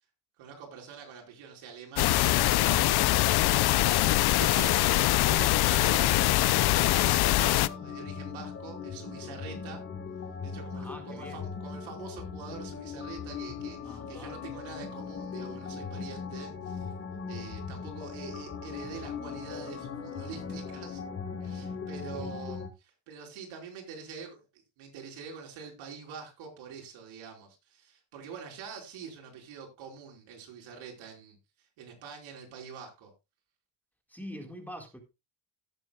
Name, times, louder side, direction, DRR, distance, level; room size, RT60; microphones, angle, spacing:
voice 1, 0.4-6.2 6.9-9.8 10.4-16.9 17.3-21.0 21.4-24.4 24.8-31.4 31.8-33.1, right 6 dB, 85° right, 5.1 m, -45 dB
sound 1, 2.0-7.7, left 16 dB, 55° left, 0.6 m, -23 dB
sound 2, 6.4-22.7, left 5 dB, 30° left, 1.4 m, -39 dB
voice 2, 10.7-11.4 13.8-14.4 22.1-22.3 34.1-35.0, equal, 5° left, 1.8 m, -44 dB
17.5 x 7.7 x 2.3 m
cardioid pair, 150°, 46 cm